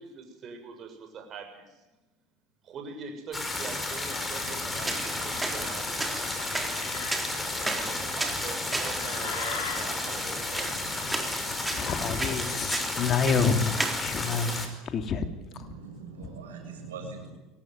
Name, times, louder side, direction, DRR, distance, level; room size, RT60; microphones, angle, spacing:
voice 1, 0.0-1.9 2.6-6.5 7.6-11.1 11.7-11.8, right 5 dB, 40° right, 7.2 m, -43 dB
sound 1, 3.3-14.7, left 2 dB, 15° left, 5.1 m, -33 dB
sound 2, 3.9-13.6, left 5 dB, 65° left, 5.6 m, -42 dB
sound 3, 4.6-14.1, right 2 dB, 15° right, 3.9 m, -36 dB
voice 2, 11.7-15.3 15.6-15.7, left 5 dB, 40° left, 2.6 m, -28 dB
voice 3, 15.5-17.3, right 4 dB, 80° right, 7.1 m, -41 dB
23.5 x 17.5 x 9.5 m
hypercardioid pair, 75°, 0 cm